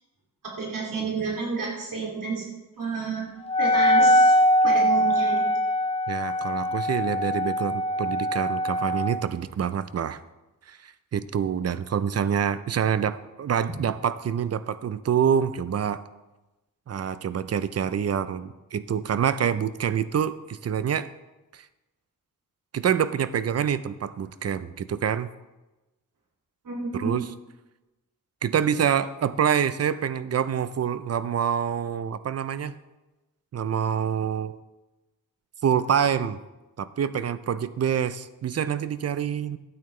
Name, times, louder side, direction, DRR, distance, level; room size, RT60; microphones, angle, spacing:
voice 1, 0.4-2.5 2.8-3.3 3.6-4.4 4.6-5.4 26.6-27.2, right 4 dB, 70° right, -3 dB, 2.6 m, -30 dB
Wind instrument woodwind instrument, 3.5-9.2, equal, 20° left, 0.4 m, -22 dB
voice 2, 6.1-10.2 10.7-16.0 16.9-21.1 21.5-21.7 22.7-25.3 26.9-27.3 28.4-32.7 33.5-34.6 35.6-36.4 36.8-39.6, right 8 dB, 45° right, 14 dB, 0.5 m, -26 dB
12.5 x 8.6 x 3.2 m, 1.1 s
wide cardioid pair, 90°, 34 cm